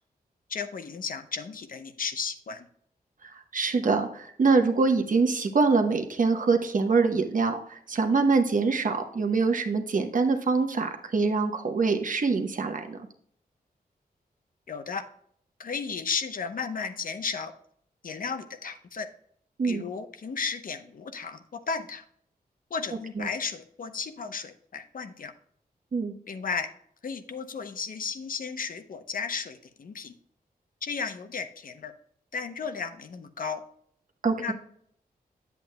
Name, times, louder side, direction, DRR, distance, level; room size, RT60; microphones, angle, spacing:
voice 1, 0.5-2.7 14.7-15.0 15.6-17.5 18.0-19.1 19.6-22.0 22.7-25.3 26.3-26.7 27.0-30.1 30.8-31.9 32.3-33.6 34.4-34.5, left 5 dB, 60° left, 9 dB, 0.7 m, -34 dB
voice 2, 3.2-13.0 19.6-19.8 23.1-23.3 25.9-26.1 34.2-34.5, right 4 dB, 55° right, 5 dB, 1.0 m, -24 dB
9.1 x 8.1 x 2.2 m, 0.65 s
wide cardioid pair, 100°, 16 cm